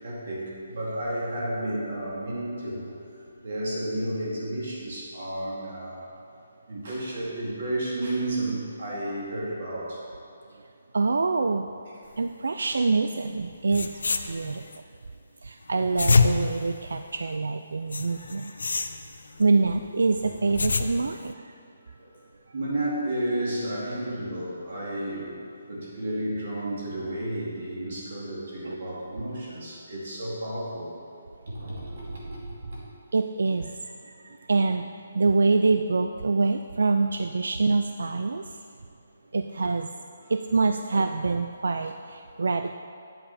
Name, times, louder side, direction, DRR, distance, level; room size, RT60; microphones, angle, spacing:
voice 1, 0.0-2.9 3.4-6.1 6.7-10.0 12.6-12.7 18.1-18.9 22.0-22.2 22.5-25.4 25.7-30.9 31.5-32.8 39.6-39.7, right 1 dB, 45° right, -5 dB, 2.3 m, -32 dB
voice 2, 10.9-11.7 12.2-14.6 15.4-18.5 19.4-21.5 28.6-28.8 33.1-34.9 35.1-38.5 39.3-39.9 40.3-42.8, right 3 dB, 80° right, 7 dB, 0.3 m, -25 dB
sound 1, 13.4-13.5 13.7-14.8 15.7-17.4 17.9-19.5 20.2-21.3, left 4 dB, 85° left, 0.5 m, -26 dB
8.8 x 7.6 x 4.2 m, 2.6 s
hypercardioid pair, 180°, 0 cm